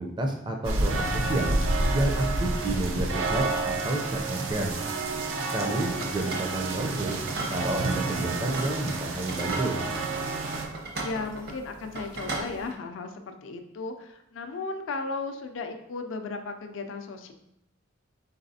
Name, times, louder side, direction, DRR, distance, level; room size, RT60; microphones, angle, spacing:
voice 1, 0.0-1.6 1.9-4.8 5.5-7.2 7.5-9.8, right 2 dB, 25° right, 2 dB, 0.4 m, -30 dB
sound 1, 0.6-10.7, right 2 dB, 90° right, 0.5 m, -29 dB
voice 2, 2.6-3.5 6.0-6.4 11.0-17.3, left 3 dB, 80° left, 6 dB, 0.4 m, -36 dB
sound 2, 5.9-12.7, right 2 dB, 55° right, 0.8 m, -37 dB
4.0 x 3.9 x 2.7 m, 0.81 s
head